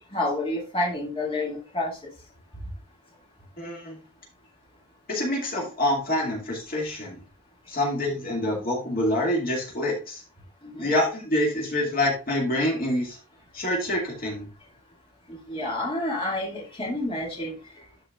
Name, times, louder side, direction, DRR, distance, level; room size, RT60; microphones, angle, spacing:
voice 1, 0.1-1.9 10.6-10.9 15.5-17.5, left 1 dB, 25° left, -3 dB, 2.2 m, -29 dB
voice 2, 3.6-4.0 5.1-7.2 7.7-10.2 10.8-13.2 13.5-14.5, left 1 dB, 45° left, -2 dB, 2.2 m, -26 dB
12.5 x 4.8 x 2.4 m, 0.33 s
head